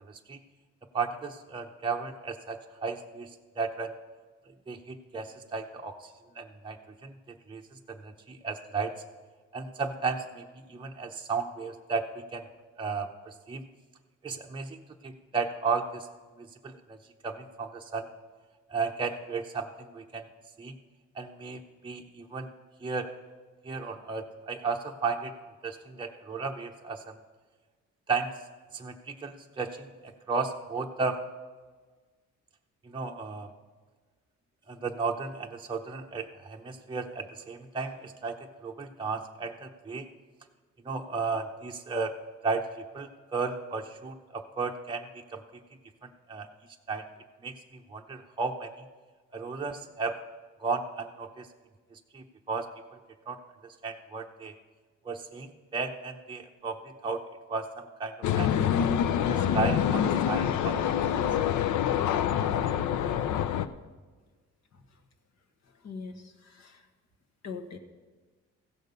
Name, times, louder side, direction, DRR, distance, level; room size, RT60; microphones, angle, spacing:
voice 1, 0.1-0.4 0.9-3.9 4.7-6.8 7.0-7.6 7.9-8.9 9.5-12.4 12.8-13.6 14.2-16.1 16.4-17.0 17.2-18.1 18.7-20.3 20.6-20.7 21.2-22.5 22.8-23.1 23.6-25.3 25.6-27.0 28.1-28.3 28.7-31.2 32.8-33.5 34.7-40.1 40.8-42.1 42.4-42.7 42.9-45.4 46.0-46.5 46.9-47.0 47.4-48.7 49.3-50.2 50.6-51.5 51.9-52.7 53.3-53.4 53.8-54.5 55.0-57.2 57.5-58.5 59.3-61.0, right 4 dB, 15° right, 1 dB, 0.7 m, -34 dB
sound 1, 58.2-63.7, left 9 dB, 75° left, 0.6 m, -26 dB
voice 2, 65.6-66.9 67.4-67.8, left 5 dB, 60° left, 5 dB, 1.4 m, -43 dB
15.5 x 6.4 x 5.3 m, 1.4 s
cardioid pair, 90°, 30 cm